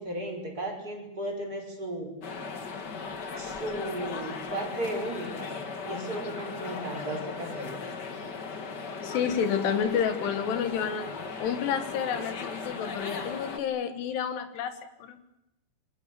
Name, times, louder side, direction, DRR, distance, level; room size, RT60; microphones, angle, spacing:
voice 1, 0.0-2.1 3.4-5.5 5.8-7.8, right 1 dB, 20° right, 1 dB, 5.7 m, -35 dB
sound 1, 2.2-13.6, left 4 dB, 50° left, 1.3 m, -37 dB
voice 2, 9.0-11.1 11.4-15.2, left 7 dB, 75° left, 10 dB, 3.6 m, -30 dB
27.5 x 25.0 x 7.0 m, 0.88 s
omnidirectional pair, 4.9 m